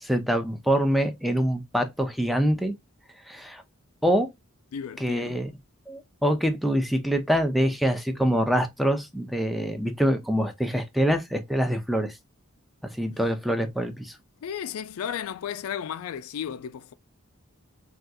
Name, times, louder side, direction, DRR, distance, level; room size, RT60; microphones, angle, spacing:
voice 1, 0.0-2.7 3.3-3.6 4.0-4.3 5.0-5.5 5.9-12.2 12.9-14.1, equal, ahead, 0.4 m, -25 dB
voice 2, 4.7-5.5 13.1-13.2 14.4-16.9, left 8 dB, 80° left, 0.3 m, -34 dB
3.5 x 2.3 x 2.6 m
head